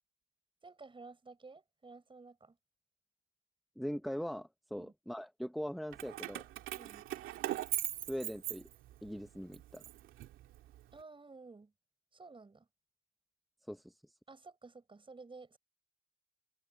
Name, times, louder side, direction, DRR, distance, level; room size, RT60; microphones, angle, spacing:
voice 1, 0.6-2.6 4.7-4.9 6.7-7.1 10.9-11.7 12.1-12.7 14.3-15.6, right 3 dB, 25° right, 6.5 m, -53 dB
voice 2, 3.8-6.5 8.1-8.7 9.0-9.8 13.7-14.1, equal, ahead, 1.0 m, -41 dB
Keys jangling, 5.9-9.1 9.5-10.8, right 13 dB, 90° right, 2.4 m, -40 dB
cardioid pair, 90°, 20 cm